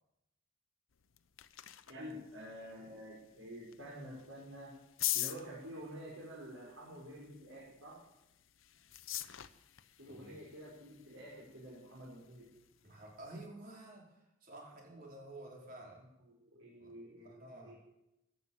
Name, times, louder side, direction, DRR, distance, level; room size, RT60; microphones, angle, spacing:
sound 1, 0.9-13.5, left 15 dB, 80° left, 0.8 m, -46 dB
voice 1, 1.9-4.7 5.1-8.0 10.0-12.5 16.2-17.8, equal, 85° right, -6 dB, 5.4 m, -49 dB
voice 2, 10.0-10.4 12.8-16.0 16.8-16.9 17.2-17.7, right 1 dB, 45° right, -1 dB, 4.9 m, -51 dB
16.5 x 11.5 x 7.4 m, 0.90 s
head